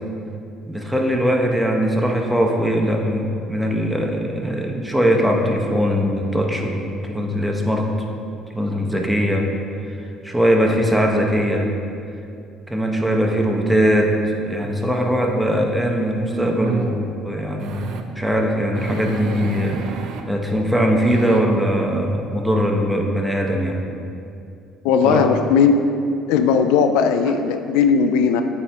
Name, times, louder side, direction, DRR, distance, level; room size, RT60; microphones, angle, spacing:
voice 1, 0.7-7.8 8.5-9.5 10.2-11.7 12.7-14.1 14.4-17.8 18.2-19.8 20.3-23.8 25.0-25.2, equal, 5° right, 1 dB, 0.9 m, -20 dB
sound 1, 15.5-15.6 16.3-16.9 17.6-18.1 18.7-20.2 21.0-21.4, right 6 dB, 70° right, 0.5 m, -29 dB
voice 2, 24.8-25.8 26.3-28.4, left 6 dB, 85° left, 7 dB, 0.4 m, -17 dB
8.5 x 4.4 x 3.5 m, 2.5 s
supercardioid pair, 85°, 0 cm